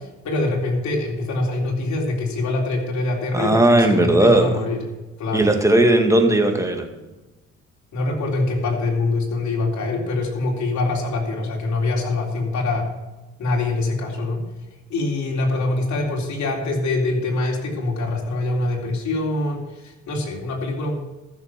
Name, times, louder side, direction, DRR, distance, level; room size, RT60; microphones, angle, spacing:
voice 1, 0.0-4.8 5.2-5.5 7.9-12.9 13.4-14.5 14.9-20.9, left 2 dB, 65° left, -1 dB, 3.6 m, -24 dB
voice 2, 3.3-4.6 5.3-6.9, right 1 dB, 10° right, 4 dB, 2.0 m, -16 dB
14.0 x 6.9 x 5.8 m, 1.1 s
cardioid pair, 90°, 30 cm